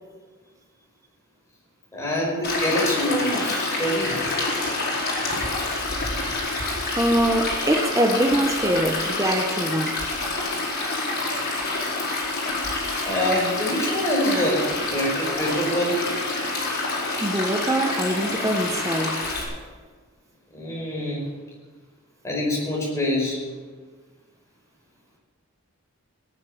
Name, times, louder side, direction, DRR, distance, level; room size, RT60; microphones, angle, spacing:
voice 1, 1.9-4.2 13.1-16.1 20.5-21.3 22.2-23.4, left 1 dB, 15° left, 5.2 m, -25 dB
Stream, 2.4-19.4, left 2 dB, 50° left, 4.9 m, -27 dB
voice 2, 7.0-10.1 17.2-19.3, right 1 dB, 15° right, 0.8 m, -23 dB
17.5 x 10.0 x 7.0 m
head